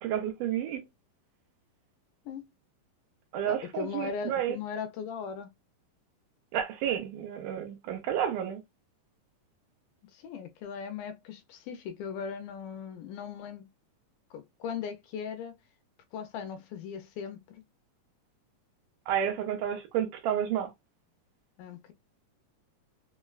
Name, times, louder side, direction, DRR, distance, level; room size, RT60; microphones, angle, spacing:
voice 1, 0.0-0.8 3.3-4.6 6.5-8.6 19.1-20.7, right 10 dB, 75° right, 2.1 m, -31 dB
voice 2, 3.4-5.5 10.1-13.7 14.3-15.5 16.1-17.6 21.6-21.9, left 6 dB, 80° left, 2.0 m, -38 dB
5.5 x 2.1 x 2.2 m
omnidirectional pair, 4.0 m